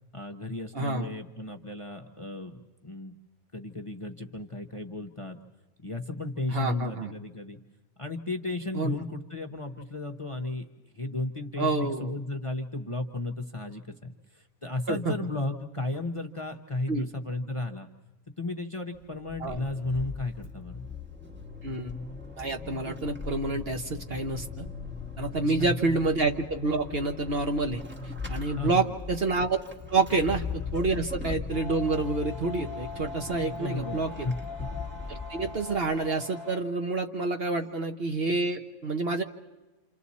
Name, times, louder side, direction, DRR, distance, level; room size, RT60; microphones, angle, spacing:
voice 1, 0.1-3.1 3.5-5.4 5.8-7.6 8.0-10.7 10.9-17.9 18.4-20.8 25.3-25.5 28.6-29.0 33.4-34.3 37.6-37.7, left 2 dB, 25° left, 4 dB, 0.8 m, -34 dB
voice 2, 0.7-1.1 6.5-7.1 8.7-9.0 11.6-12.1 14.9-15.1 16.9-17.1 19.4-19.6 21.6-21.9 22.4-24.7 25.2-27.8 28.3-29.6 29.9-34.3 35.1-39.2, right 3 dB, 45° right, 5 dB, 1.1 m, -28 dB
Vehicle / Accelerating revving vroom / Squeak, 19.0-36.2, left 4 dB, 10° right, 1.1 m, -39 dB
sound 1, 31.5-36.6, left 3 dB, 30° right, 1.4 m, -42 dB
28.5 x 27.5 x 4.2 m, 1.1 s
omnidirectional pair, 1.5 m